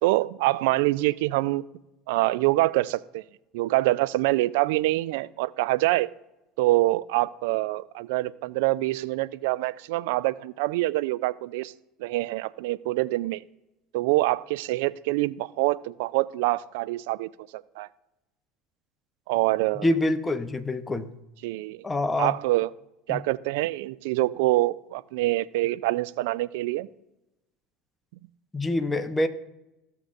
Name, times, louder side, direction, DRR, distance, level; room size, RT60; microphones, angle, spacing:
voice 1, 0.0-1.6 2.1-3.2 3.5-6.1 6.6-11.7 12.0-13.4 13.9-17.9 19.3-19.9 21.4-21.8 22.2-22.7 23.1-26.9, right 18 dB, 70° right, 18 dB, 0.3 m, -25 dB
voice 2, 19.8-21.1 21.8-22.3 23.1-23.2 28.5-29.3, left 1 dB, 15° left, 9 dB, 0.8 m, -26 dB
16.0 x 6.8 x 2.5 m, 0.93 s
hypercardioid pair, 75°, 0 cm